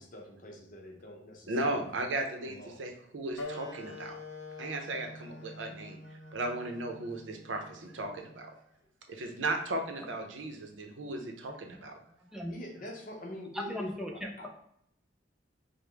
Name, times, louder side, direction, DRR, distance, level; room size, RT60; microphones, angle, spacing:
voice 1, 0.0-1.8 2.5-2.8 12.5-14.5, equal, 45° left, 1 dB, 0.8 m, -45 dB
voice 2, 1.5-4.2 4.6-8.5 9.1-11.9, right 2 dB, 75° right, 3 dB, 0.6 m, -36 dB
Wind instrument woodwind instrument, 3.4-8.5, left 2 dB, 85° left, 0.6 m, -46 dB
voice 3, 13.5-14.5, left 1 dB, 5° right, 0 dB, 0.5 m, -37 dB
5.0 x 2.1 x 3.3 m, 0.72 s
head